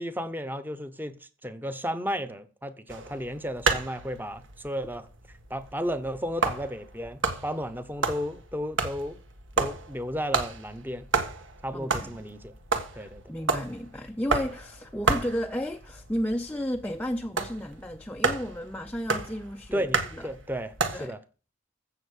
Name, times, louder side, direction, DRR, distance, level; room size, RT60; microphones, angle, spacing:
voice 1, 0.0-5.1 5.5-9.2 9.6-11.1 11.6-12.5 12.9-13.2 19.7-21.2, equal, 10° right, 0.9 m, -33 dB
sound 1, 2.9-21.1, right 4 dB, 65° right, 1.7 m, -32 dB
voice 2, 11.7-12.1 12.9-19.9 20.1-20.3 20.9-21.2, equal, 5° left, 0.5 m, -33 dB
15.0 x 6.5 x 6.5 m
head